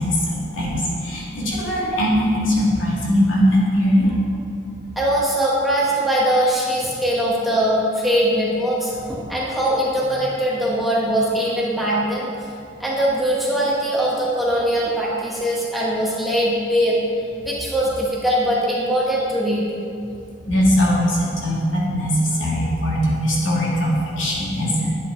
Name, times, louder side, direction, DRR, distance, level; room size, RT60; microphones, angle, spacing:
voice 1, 0.0-4.1 20.5-24.9, equal, 85° left, -5 dB, 2.6 m, -20 dB
voice 2, 4.9-12.3 12.8-17.0 17.4-19.7, equal, ahead, -6 dB, 1.7 m, -21 dB
10.5 x 8.2 x 4.1 m, 2.4 s
head